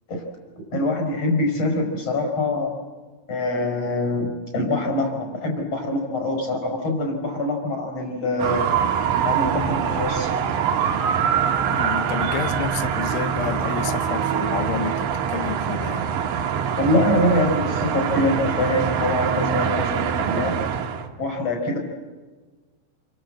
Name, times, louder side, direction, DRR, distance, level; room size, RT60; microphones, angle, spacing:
voice 1, 0.7-2.7 3.3-8.7 9.2-10.3 16.8-20.6 21.2-21.8, left 1 dB, 30° left, 5.6 m, -24 dB
sound 1, 8.4-21.1, right 7 dB, 65° right, 2.5 m, -24 dB
voice 2, 11.7-16.1, left 10 dB, 80° left, 3.6 m, -30 dB
28.0 x 24.0 x 7.7 m
omnidirectional pair, 5.5 m